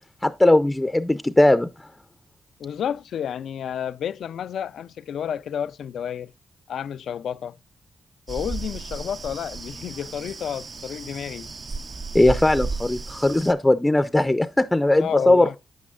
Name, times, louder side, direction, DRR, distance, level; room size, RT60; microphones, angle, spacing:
voice 1, 0.2-1.7 12.1-15.6, left 1 dB, 15° left, 0.4 m, -19 dB
voice 2, 2.6-6.3 6.7-7.6 8.3-11.5 15.0-15.5, left 8 dB, 85° left, 0.3 m, -31 dB
sound 1, 8.3-13.5, right 4 dB, 45° right, 0.5 m, -34 dB
8.6 x 8.5 x 2.3 m
cardioid pair, 65°, 0 cm